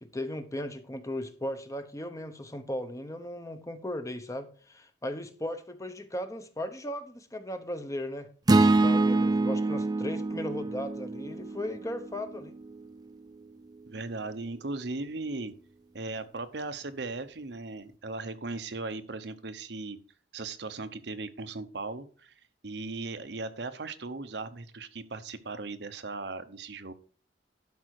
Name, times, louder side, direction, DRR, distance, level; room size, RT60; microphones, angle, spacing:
voice 1, 0.0-8.3 8.8-12.5, left 1 dB, 15° left, 8 dB, 0.9 m, -37 dB
sound 1, 8.5-12.7, right 2 dB, 20° right, 0.4 m, -26 dB
voice 2, 13.9-15.5 15.9-20.0 20.3-22.3 22.6-26.9, right 3 dB, 65° right, 10 dB, 0.9 m, -37 dB
12.0 x 5.5 x 4.7 m, 0.40 s
head